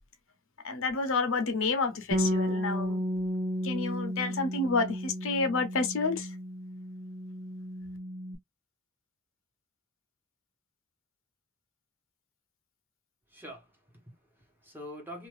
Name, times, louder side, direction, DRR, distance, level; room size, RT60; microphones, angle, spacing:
voice 1, 0.6-3.0 3.6-6.3, left 3 dB, 70° left, 0.8 m, -29 dB
Bass guitar, 2.1-8.4, equal, 40° right, 0.7 m, -33 dB
voice 2, 13.3-15.3, equal, 10° right, 1.3 m, -46 dB
2.7 x 2.6 x 3.2 m
head